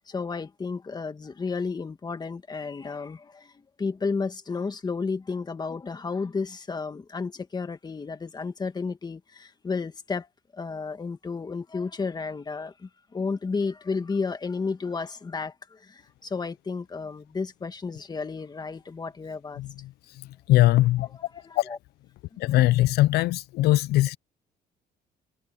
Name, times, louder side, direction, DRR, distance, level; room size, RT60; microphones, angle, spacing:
voice 1, 0.1-3.5 3.8-10.3 10.5-19.6 21.0-21.8 22.5-22.6, left 4 dB, 25° left, 1.8 m, -32 dB
voice 2, 20.5-21.1 21.6-21.7 22.4-24.2, left 16 dB, 70° left, 0.4 m, -21 dB
cardioid pair, 110°, 17 cm